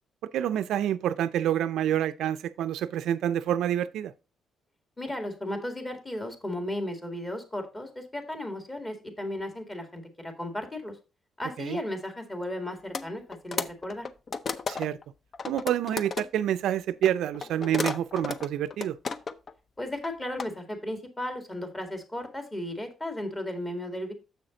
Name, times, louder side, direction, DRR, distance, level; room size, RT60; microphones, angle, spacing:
voice 1, 0.3-4.1 11.6-11.8 14.7-15.0 15.5-19.0, right 11 dB, 80° right, 0.4 m, -27 dB
voice 2, 5.0-10.9 11.4-14.1 19.8-24.1, left 1 dB, 20° left, 2.0 m, -35 dB
sound 1, 12.9-13.1 13.3-15.0 15.3-16.3 17.0-19.5 19.8-20.5, left 5 dB, 45° left, 0.6 m, -33 dB
6.9 x 6.2 x 3.8 m
cardioid pair, 90°, 0 cm